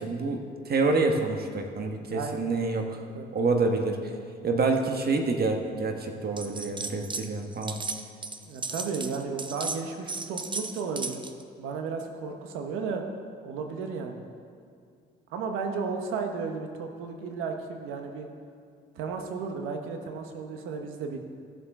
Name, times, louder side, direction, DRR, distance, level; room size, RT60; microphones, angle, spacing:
voice 1, 0.0-3.0 3.3-4.1 4.4-7.8, right 3 dB, 50° right, 3 dB, 1.5 m, -27 dB
voice 2, 2.1-2.4 3.1-3.5 8.4-11.2 11.6-13.0 13.4-14.2 15.3-18.3 18.9-21.2, right 5 dB, 90° right, 4 dB, 1.1 m, -34 dB
sound 1, 6.4-7.3 7.5-11.4, right 3 dB, 25° right, 0.8 m, -35 dB
15.5 x 7.4 x 3.8 m, 2.3 s
supercardioid pair, 65°, 20 cm